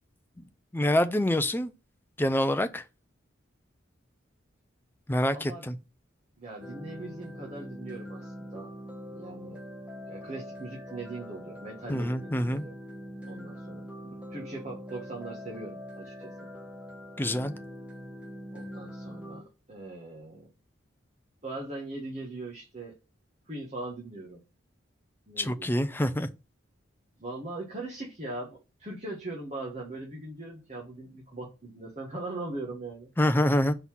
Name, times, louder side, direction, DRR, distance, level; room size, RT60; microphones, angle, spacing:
voice 1, 0.7-1.7 2.2-2.8 5.1-5.8 11.9-12.6 17.2-17.5 25.4-26.3 33.2-33.7, left 1 dB, 10° left, 0.5 m, -26 dB
voice 2, 5.3-5.7 6.4-8.7 9.1-9.6 10.1-12.8 13.3-16.5 18.5-20.5 21.4-23.0 23.5-24.4 25.3-25.7 27.2-33.1, right 2 dB, 35° right, 1.5 m, -40 dB
sound 1, 6.6-19.4, equal, 5° right, 1.2 m, -43 dB
5.5 x 4.0 x 6.1 m
head